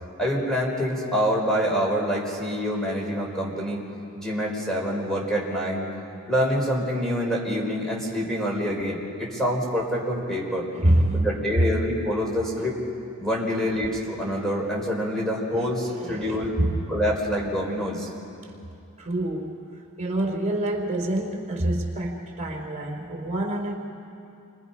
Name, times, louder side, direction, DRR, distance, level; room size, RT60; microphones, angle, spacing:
voice 1, 0.2-3.8 4.1-5.9 6.3-10.6 11.1-12.8 13.2-16.5 16.9-18.1, equal, ahead, -3 dB, 4.4 m, -26 dB
voice 2, 10.7-11.3 12.6-12.7 15.5-16.9 19.0-19.5 20.0-23.7, right 1 dB, 35° right, 0 dB, 3.6 m, -26 dB
30.0 x 24.5 x 5.5 m, 2.6 s
head